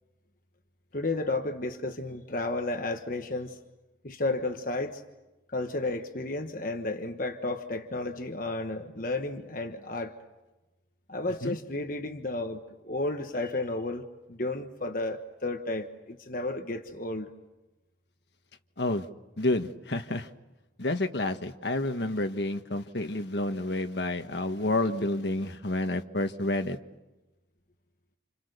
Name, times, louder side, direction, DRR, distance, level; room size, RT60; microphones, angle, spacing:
voice 1, 0.9-3.5 4.0-5.0 5.5-10.1 11.1-17.3, left 2 dB, 45° left, 1.3 m, -32 dB
voice 2, 19.4-20.3 20.8-26.8, left 2 dB, 65° left, 1.5 m, -29 dB
29.5 x 28.5 x 6.8 m
head